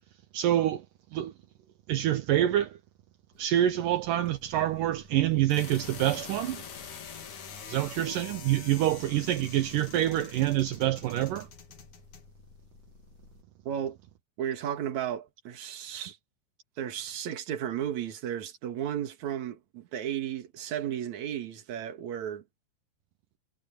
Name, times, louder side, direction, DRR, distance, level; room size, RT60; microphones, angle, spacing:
voice 1, 0.3-0.9 1.1-1.3 1.9-2.8 3.4-6.6 7.7-11.5, right 12 dB, 75° right, 2.6 m, -26 dB
sound 1, 3.3-13.4, left 6 dB, 60° left, 3.8 m, -46 dB
voice 2, 13.7-14.0 14.4-16.2 16.8-22.4, right 10 dB, 60° right, 2.9 m, -34 dB
omnidirectional pair, 4.0 m